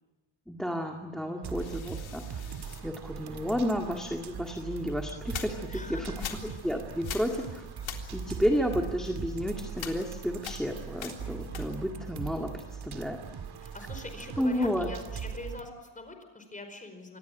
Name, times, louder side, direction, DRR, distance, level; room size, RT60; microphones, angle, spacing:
voice 1, 0.5-6.1 6.4-7.6 8.1-13.2 14.4-14.9, equal, ahead, 3 dB, 2.0 m, -32 dB
voice 2, 1.2-1.6 5.7-6.4 13.6-17.2, left 2 dB, 15° left, 7 dB, 4.9 m, -44 dB
sound 1, 1.4-15.6, right 7 dB, 55° right, 2.1 m, -40 dB
sound 2, 1.6-3.8 4.4-12.1 12.4-14.0, left 8 dB, 80° left, 3.7 m, -45 dB
26.0 x 20.0 x 9.2 m, 1.2 s
wide cardioid pair, 155°, 46 cm